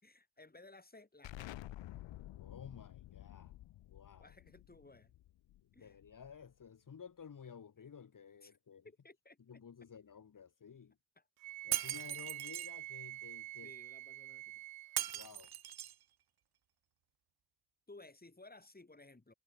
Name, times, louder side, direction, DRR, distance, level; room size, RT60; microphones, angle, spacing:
voice 1, 0.0-1.5 4.2-5.1 5.7-6.0 8.4-8.6 8.8-9.6 11.1-11.3 13.6-14.6 17.9-19.3, left 2 dB, 20° left, 5.3 m, -58 dB
Explosion, 1.2-6.6, left 15 dB, 70° left, 1.6 m, -51 dB
voice 2, 2.4-3.6 3.9-4.3 5.8-8.9 9.5-11.0 11.6-13.7 15.1-15.5, left 7 dB, 40° left, 2.4 m, -54 dB
Wind instrument woodwind instrument, 11.4-15.1, right 18 dB, 70° right, 1.0 m, -47 dB
Shatter, 11.7-12.7 15.0-16.0, right 11 dB, 55° right, 1.3 m, -39 dB
hypercardioid pair, 45°, 46 cm